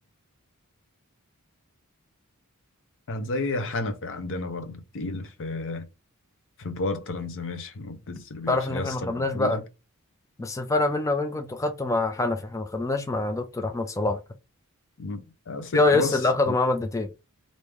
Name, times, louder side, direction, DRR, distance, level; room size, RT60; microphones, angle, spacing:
voice 1, 3.1-5.9 6.6-9.6 15.0-15.2 15.5-16.2 16.5-16.6, left 2 dB, 60° left, 0.6 m, -32 dB
voice 2, 8.5-9.6 10.4-14.2 15.7-17.1, left 2 dB, 15° left, 0.3 m, -25 dB
3.4 x 2.6 x 3.1 m
head